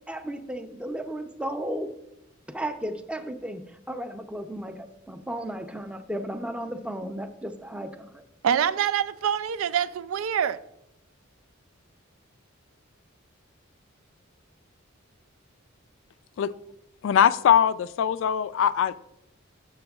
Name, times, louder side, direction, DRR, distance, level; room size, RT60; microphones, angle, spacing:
voice 1, 0.1-1.9 2.5-8.2, right 1 dB, 5° right, 0.5 m, -34 dB
voice 2, 8.4-10.6, right 8 dB, 85° right, 0.4 m, -25 dB
voice 3, 17.0-19.0, left 9 dB, 65° left, 0.3 m, -21 dB
10.5 x 7.0 x 2.3 m
head